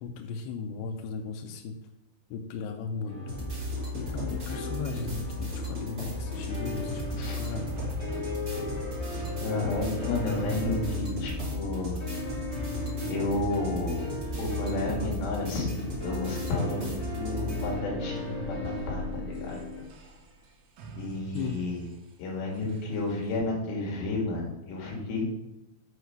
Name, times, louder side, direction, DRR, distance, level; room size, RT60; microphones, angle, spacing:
voice 1, 0.0-1.8 2.3-3.2 3.9-7.7 21.3-21.7, left 5 dB, 85° left, 5 dB, 2.5 m, -36 dB
sound 1, 3.1-19.8, left 2 dB, 35° left, 1.2 m, -38 dB
sound 2, 3.3-17.7, left 1 dB, 35° right, 1.4 m, -35 dB
sound 3, 6.3-14.7 16.6-23.4, right 4 dB, 80° right, 3.4 m, -43 dB
voice 2, 9.1-12.0 13.1-19.6 20.9-21.8 22.2-25.3, left 3 dB, 65° left, -1 dB, 3.9 m, -32 dB
8.2 x 5.0 x 5.7 m, 0.91 s
omnidirectional pair, 5.5 m